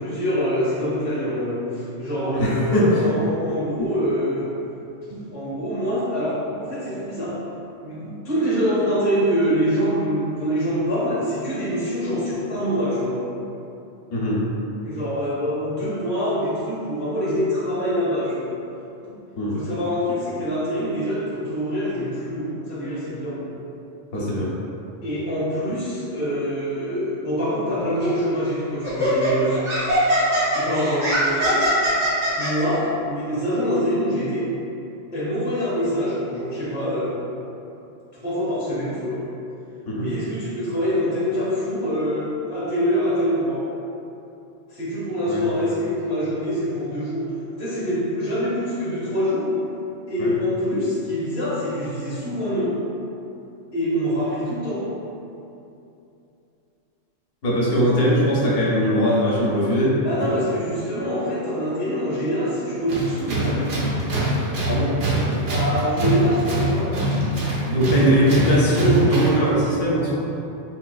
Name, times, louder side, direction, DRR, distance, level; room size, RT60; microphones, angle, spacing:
voice 1, 0.0-4.5 5.1-7.4 7.8-13.2 14.8-18.6 19.5-23.4 25.0-29.6 30.5-31.7 32.4-34.5 35.1-37.2 38.1-39.2 40.0-43.6 44.7-47.3 47.6-49.5 50.1-52.8 53.7-54.8 60.0-63.9 65.5-66.9, equal, 10° right, -9 dB, 0.5 m, -25 dB
voice 2, 2.3-3.0 14.1-14.4 19.4-19.5 24.1-24.5 39.9-40.1 45.3-45.4 50.2-50.3 57.4-60.0 60.3-60.4 64.7-65.5 67.7-70.3, equal, 60° left, -5 dB, 0.8 m, -20 dB
Laughter, 28.0-28.2 28.8-32.5, equal, 90° right, 2.1 m, -21 dB
Tools, 62.9-69.5, right 1 dB, 75° right, 1.0 m, -23 dB
3.8 x 2.4 x 2.3 m, 2.7 s
omnidirectional pair, 1.3 m